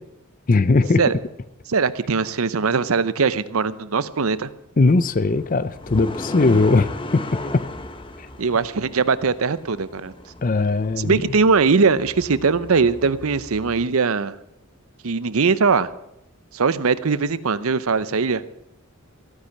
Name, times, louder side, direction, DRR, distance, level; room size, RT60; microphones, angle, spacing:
voice 1, 0.5-1.0 4.8-7.2 7.5-7.6 10.4-11.2, left 3 dB, 40° left, 0.5 m, -19 dB
voice 2, 1.7-4.5 8.4-10.1 11.0-14.3 15.0-15.9 16.5-18.4, right 4 dB, 80° right, 0.7 m, -20 dB
sound 1, 4.9-13.8, left 1 dB, 25° left, 0.9 m, -36 dB
15.0 x 9.7 x 7.2 m
head